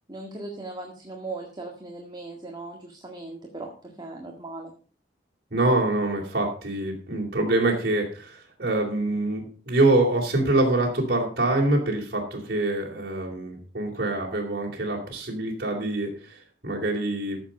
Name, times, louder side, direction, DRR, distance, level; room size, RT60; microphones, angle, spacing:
voice 1, 0.1-4.7, right 2 dB, 25° right, 1 dB, 1.8 m, -38 dB
voice 2, 5.5-17.4, right 2 dB, 55° right, -3 dB, 3.4 m, -25 dB
14.5 x 7.1 x 5.3 m, 0.39 s
head